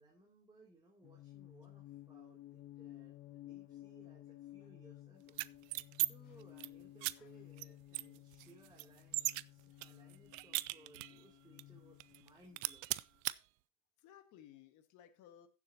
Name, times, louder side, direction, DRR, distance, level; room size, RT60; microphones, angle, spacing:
voice 1, 0.0-5.4 6.1-13.0, right 2 dB, 10° right, -3 dB, 2.9 m, -64 dB
sound 1, 1.0-13.0, left 15 dB, 45° left, 1.2 m, -55 dB
sound 2, 5.3-6.1 6.4-6.7 7.0-7.1 7.6-7.7 7.9-9.4 9.8-11.2 11.6-11.7 12.0-12.3 12.6-13.4, right 21 dB, 65° right, 0.5 m, -37 dB
voice 2, 14.0-15.5, left 10 dB, 60° left, 7 dB, 1.8 m, -60 dB
16.0 x 7.2 x 2.9 m, 0.31 s
supercardioid pair, 120°, 33 cm